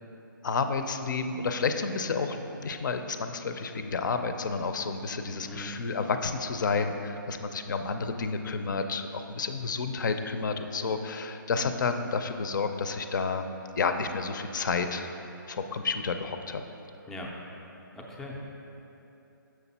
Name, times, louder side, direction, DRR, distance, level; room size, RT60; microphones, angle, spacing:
voice 1, 0.4-13.5 13.8-15.1 15.5-16.6, left 4 dB, 60° left, 7 dB, 0.5 m, -30 dB
voice 2, 5.4-5.8 17.1-17.3 17.9-18.4, left 1 dB, 5° left, -2 dB, 0.4 m, -40 dB
6.5 x 6.0 x 4.1 m, 3.0 s
hypercardioid pair, 160°, 11 cm